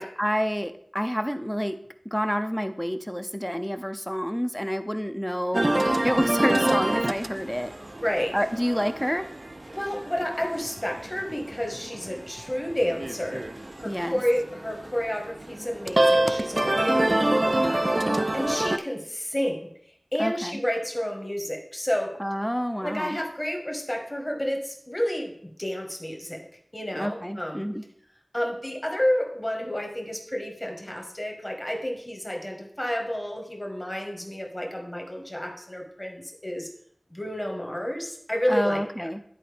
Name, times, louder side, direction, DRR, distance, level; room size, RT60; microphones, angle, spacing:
voice 1, 0.0-1.8 2.1-5.6 6.0-7.7 8.3-9.2 13.8-14.2 20.2-20.6 22.2-23.2 26.9-27.8 38.5-39.2, equal, 5° left, 8 dB, 0.5 m, -28 dB
sound 1, 5.5-18.8, right 1 dB, 40° right, 0.3 m, -27 dB
voice 2, 8.0-8.4 9.7-13.5 13.8-19.7 20.1-22.2 22.8-26.5 26.7-27.6 28.3-36.7 37.1-39.1, equal, 25° left, 2 dB, 1.4 m, -30 dB
10.0 x 4.3 x 3.4 m, 0.66 s
wide cardioid pair, 40°, 0 cm